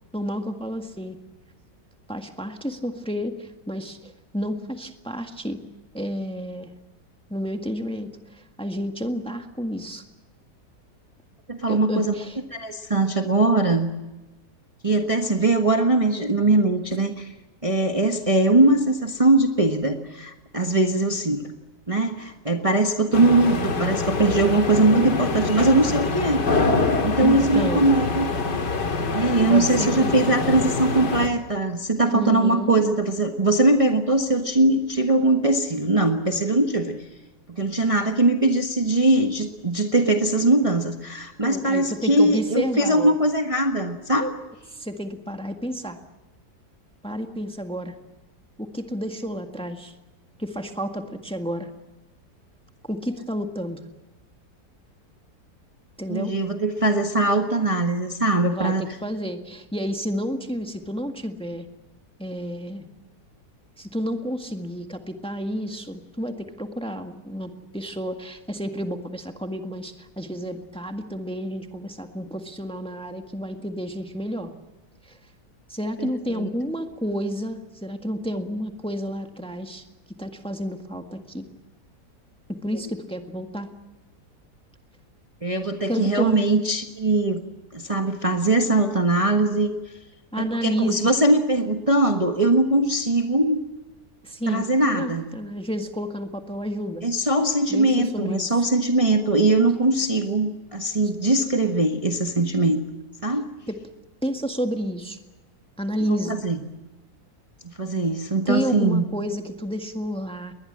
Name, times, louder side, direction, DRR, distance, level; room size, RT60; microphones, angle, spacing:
voice 1, 0.1-1.2 2.1-5.6 5.9-6.7 7.3-10.0 11.7-12.4 27.2-27.9 29.5-30.2 32.1-32.9 41.4-43.2 44.7-46.0 47.0-47.9 48.6-49.9 50.4-51.7 52.8-53.8 56.0-56.3 58.5-61.7 62.2-62.8 63.8-74.5 75.0-75.2 75.7-79.8 80.2-81.5 82.5-83.7 85.9-86.4 90.3-91.1 94.2-94.7 94.9-97.0 97.7-98.5 103.7-103.8 104.2-105.2 105.8-106.4 108.4-110.5, equal, 5° left, 5 dB, 1.6 m, -30 dB
voice 2, 11.5-12.1 12.5-13.9 14.8-17.3 17.6-21.5 21.9-26.4 27.0-28.2 29.1-37.0 37.5-44.3 56.1-58.9 76.0-76.5 85.4-87.4 87.7-89.7 90.4-93.6 94.5-95.3 97.0-102.8 103.2-103.5 106.1-106.6 107.6-109.0, right 2 dB, 20° right, 4 dB, 1.4 m, -21 dB
sound 1, 23.1-31.3, left 3 dB, 85° left, 2.8 m, -25 dB
21.0 x 21.0 x 8.8 m, 1.1 s
omnidirectional pair, 1.8 m